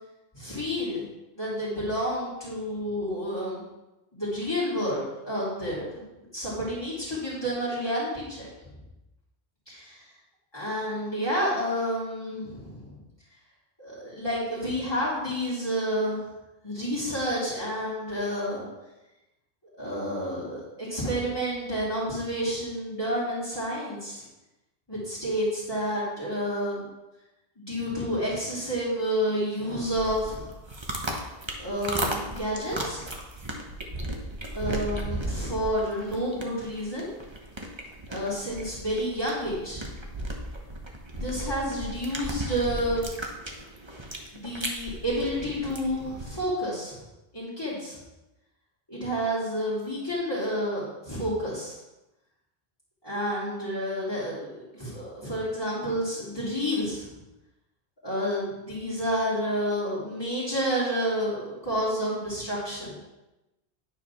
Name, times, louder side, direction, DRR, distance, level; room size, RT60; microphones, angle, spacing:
voice 1, 0.3-1.0 1.4-3.6 4.1-6.0 6.3-8.5 9.7-10.0 10.5-12.9 13.8-16.2 16.6-18.6 19.8-24.2 24.9-26.8 27.6-30.5 31.6-33.1 34.5-37.1 38.1-39.9 41.1-43.1 44.3-47.0 47.3-48.0 48.9-51.8 53.0-57.1 58.0-63.0, equal, 20° left, -10 dB, 2.9 m, -30 dB
sound 1, 29.7-46.3, right 1 dB, 25° right, 1.2 m, -35 dB
9.6 x 4.9 x 5.8 m, 0.98 s
omnidirectional pair, 1.1 m